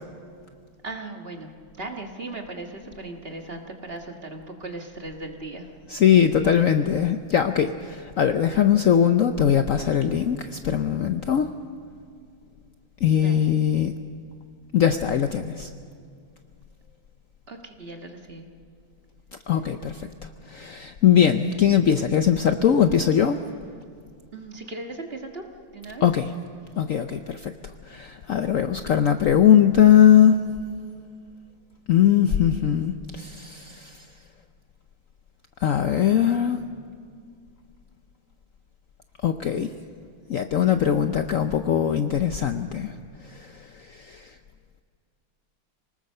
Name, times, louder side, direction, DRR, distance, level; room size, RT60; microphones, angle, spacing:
voice 1, 0.8-1.5 1.8-5.7 13.1-13.5 17.5-18.5 24.3-25.4 25.7-26.0 26.7-26.8, right 2 dB, 30° right, 3 dB, 1.6 m, -37 dB
voice 2, 5.9-11.5 13.0-13.9 14.7-15.7 19.5-20.1 20.5-23.4 26.0-26.3 26.8-27.5 27.9-30.4 31.9-34.1 35.6-36.6 39.2-39.7 40.3-43.0 43.3-44.3, left 9 dB, 85° left, 8 dB, 0.7 m, -20 dB
25.0 x 19.0 x 6.6 m, 2.2 s
omnidirectional pair, 2.3 m